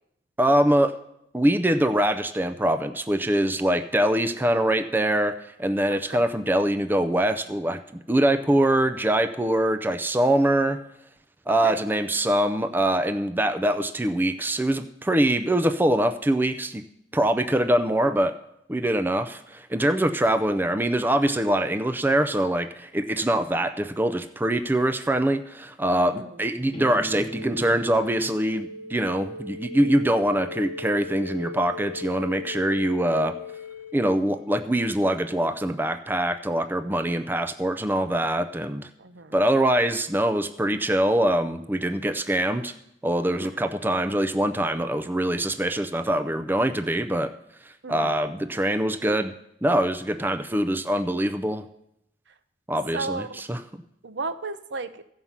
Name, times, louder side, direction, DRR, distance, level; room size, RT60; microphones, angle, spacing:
voice 1, 0.4-0.9 1.3-7.8 8.1-10.8 11.5-16.8 17.1-18.3 18.7-33.4 33.9-38.9 39.3-42.7 43.0-47.3 47.9-49.3 49.6-51.6 52.7-53.6, right 1 dB, 10° right, 9 dB, 0.4 m, -23 dB
voice 2, 5.9-6.3 11.6-11.8 25.9-26.4 36.8-37.2 39.0-39.3 43.4-43.5 47.8-48.3 52.9-53.4 54.0-55.0, right 3 dB, 70° right, 11 dB, 0.7 m, -35 dB
sound 1, 26.7-34.6, left 2 dB, 30° left, 1.3 m, -38 dB
15.0 x 5.5 x 7.3 m, 0.79 s
head